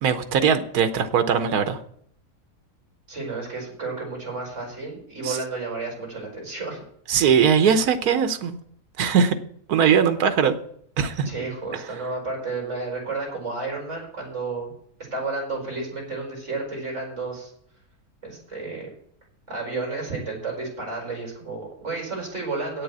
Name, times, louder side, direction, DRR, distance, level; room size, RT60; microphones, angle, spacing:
voice 1, 0.0-1.8 5.2-5.4 7.1-8.6 9.0-9.4 9.7-10.6 11.0-11.3, right 7 dB, 70° right, 9 dB, 1.4 m, -20 dB
voice 2, 3.1-6.8 11.2-14.7 15.1-17.5 18.2-18.9 19.5-22.8, right 3 dB, 45° right, 0 dB, 5.0 m, -31 dB
8.5 x 7.7 x 8.2 m, 0.66 s
omnidirectional pair, 1.7 m